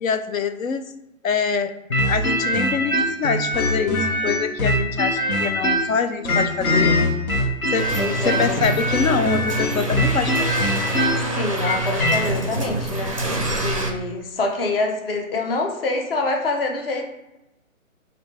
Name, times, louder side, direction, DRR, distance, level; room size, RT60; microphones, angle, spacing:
voice 1, 0.0-0.9 1.2-1.7 2.1-7.0 7.7-7.9 8.2-10.7, left 6 dB, 70° left, 10 dB, 0.6 m, -25 dB
sound 1, 1.9-6.0 6.3-12.2, left 1 dB, 90° left, 1.2 m, -22 dB
sound 2, 7.8-13.9, right 1 dB, 25° right, 0.4 m, -26 dB
voice 2, 8.0-8.6 11.3-13.2 13.6-17.0, left 2 dB, 45° left, 1 dB, 0.9 m, -25 dB
6.0 x 2.6 x 3.3 m, 0.95 s
hypercardioid pair, 155°, 42 cm